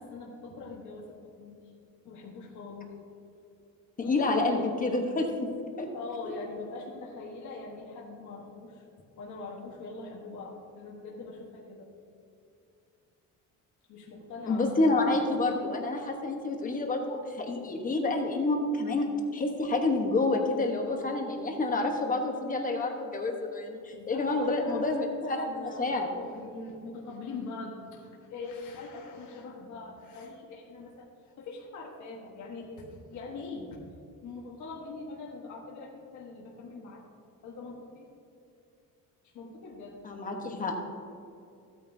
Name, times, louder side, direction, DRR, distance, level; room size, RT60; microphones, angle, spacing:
voice 1, 0.0-1.6 2.0-2.9 4.0-4.7 5.9-8.8 9.2-11.9 13.9-15.6 23.9-31.1 31.4-33.8 34.2-37.0 37.4-38.1 39.3-40.0, left 3 dB, 55° left, -2 dB, 1.3 m, -42 dB
voice 2, 4.1-5.5 5.8-5.9 14.5-26.1 40.0-40.8, left 2 dB, 25° left, 2 dB, 1.1 m, -28 dB
15.0 x 9.0 x 2.7 m, 2.6 s
cardioid pair, 180°, 35 cm